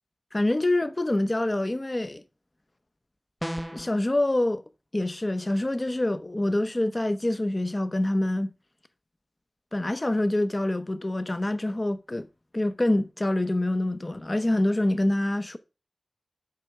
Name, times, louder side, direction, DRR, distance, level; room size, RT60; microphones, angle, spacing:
voice 1, 0.3-2.2 3.7-4.6 4.9-8.5 9.7-12.3 12.5-15.6, left 1 dB, 30° left, 0.8 m, -26 dB
sound 1, 3.4-3.9, equal, 5° right, 0.5 m, -33 dB
7.8 x 5.2 x 5.8 m
wide cardioid pair, 75°, 0 cm